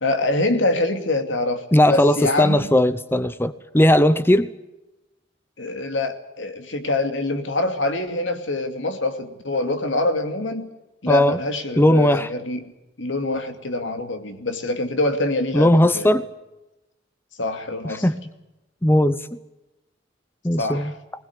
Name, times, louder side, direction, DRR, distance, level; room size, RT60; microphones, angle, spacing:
voice 1, 0.0-2.7 5.6-10.7 11.0-12.6 13.0-16.2 17.4-18.1 20.6-21.0, left 2 dB, 80° left, 7 dB, 2.6 m, -25 dB
voice 2, 1.7-4.5 11.1-11.4 11.8-12.3 15.5-16.2 18.0-18.2 18.8-19.2 20.4-20.9, left 1 dB, 10° left, 13 dB, 0.8 m, -17 dB
21.0 x 20.0 x 8.3 m, 0.97 s
head